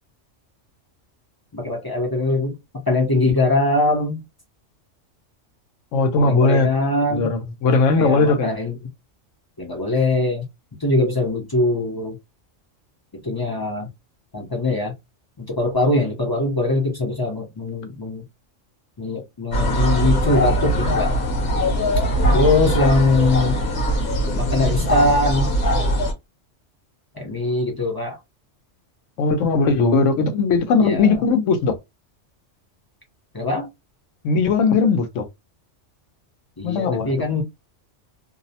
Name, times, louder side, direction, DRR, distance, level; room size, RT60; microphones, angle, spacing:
voice 1, 1.5-4.2 6.2-7.3 8.0-8.8 9.6-10.5 10.8-12.2 13.1-13.9 14.3-14.9 15.4-18.2 19.0-21.2 22.3-23.6 24.3-25.5 27.1-28.2 29.9-30.1 30.8-31.2 33.3-33.7 36.6-37.4, left 2 dB, 35° left, 0.4 m, -22 dB
voice 2, 5.9-6.7 7.1-8.5 29.2-31.8 34.2-35.3 36.6-37.3, left 4 dB, 85° left, 1.0 m, -18 dB
sound 1, 19.5-26.1, equal, 60° left, 1.1 m, -21 dB
2.7 x 2.0 x 2.7 m
omnidirectional pair, 1.3 m